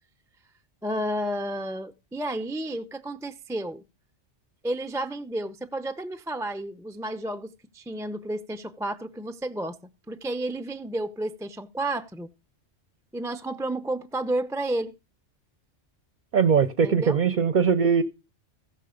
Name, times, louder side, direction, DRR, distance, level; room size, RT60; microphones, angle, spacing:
voice 1, 0.8-3.8 4.6-9.8 10.1-12.3 13.1-14.9 16.8-17.2, right 1 dB, 5° right, 0.4 m, -31 dB
voice 2, 16.3-18.0, right 6 dB, 45° right, 0.7 m, -21 dB
15.0 x 6.7 x 5.1 m
omnidirectional pair, 1.2 m